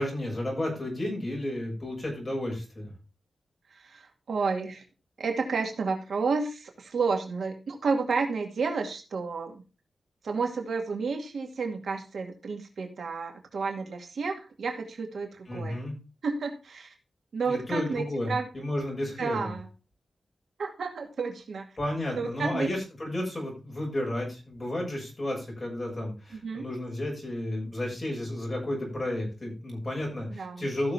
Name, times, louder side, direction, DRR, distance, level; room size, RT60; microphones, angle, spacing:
voice 1, 0.0-2.9 15.5-15.9 17.4-19.5 21.8-30.9, left 1 dB, 25° left, -1 dB, 6.7 m, -32 dB
voice 2, 3.7-4.8 5.2-9.6 10.2-15.8 16.2-16.9 17.3-18.5 19.2-19.7 20.6-21.6 22.1-22.7 26.3-26.7 30.3-30.7, right 4 dB, 75° right, 3 dB, 2.3 m, -31 dB
15.5 x 6.5 x 3.4 m, 0.31 s
wide cardioid pair, 130°, 0 cm